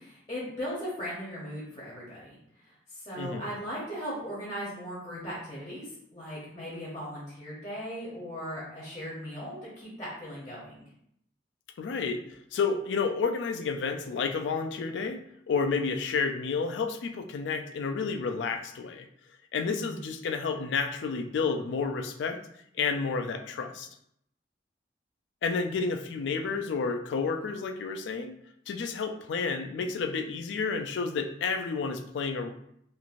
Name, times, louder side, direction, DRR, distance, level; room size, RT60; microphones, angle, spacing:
voice 1, 0.0-10.8 19.6-20.0, equal, 25° left, -7 dB, 0.8 m, -38 dB
voice 2, 3.2-3.6 11.8-12.2 12.5-15.2 15.5-19.1 19.5-22.4 22.7-23.9 25.4-28.3 28.7-32.5, left 5 dB, 90° left, 7 dB, 0.3 m, -30 dB
3.0 x 2.5 x 2.5 m, 0.72 s
head